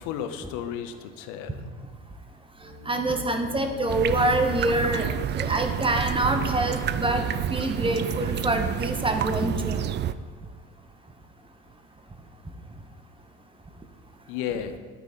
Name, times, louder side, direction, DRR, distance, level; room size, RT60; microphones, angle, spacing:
voice 1, 0.0-1.6 14.3-14.8, left 9 dB, 65° left, 10 dB, 0.9 m, -33 dB
sound 1, 2.6-8.8, right 1 dB, 90° right, 2.9 m, -43 dB
voice 2, 2.9-5.1 5.4-7.2 7.5-9.8, right 1 dB, 15° right, 5 dB, 1.1 m, -25 dB
sound 2, 3.9-10.1, right 10 dB, 30° right, 0.4 m, -29 dB
10.0 x 8.9 x 3.8 m, 1.5 s
hypercardioid pair, 70°, 37 cm